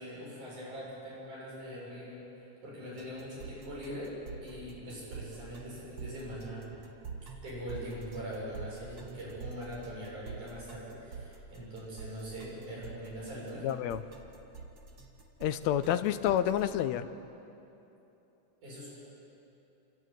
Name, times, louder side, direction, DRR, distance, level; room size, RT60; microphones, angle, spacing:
voice 1, 0.0-2.2 2.6-4.1 4.4-6.7 7.4-13.7 18.6-19.1, equal, 75° right, -6 dB, 8.8 m, -42 dB
sound 1, 3.0-16.6, right 5 dB, 40° right, 2.2 m, -46 dB
voice 2, 13.6-14.0 15.4-17.1, left 11 dB, 75° left, 11 dB, 1.8 m, -29 dB
30.0 x 12.5 x 9.3 m, 2.9 s
omnidirectional pair, 3.6 m